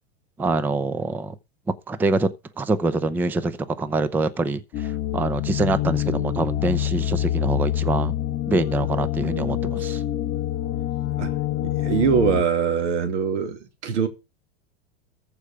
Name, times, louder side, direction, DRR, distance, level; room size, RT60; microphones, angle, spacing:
voice 1, 0.4-1.3 1.7-2.3 2.6-8.1 8.5-10.0, right 3 dB, 5° right, 0.5 m, -25 dB
sound 1, 4.7-12.4, left 13 dB, 40° left, 2.0 m, -26 dB
voice 2, 11.6-14.1, right 7 dB, 90° right, 2.5 m, -23 dB
14.0 x 4.9 x 6.3 m
supercardioid pair, 150°, 34 cm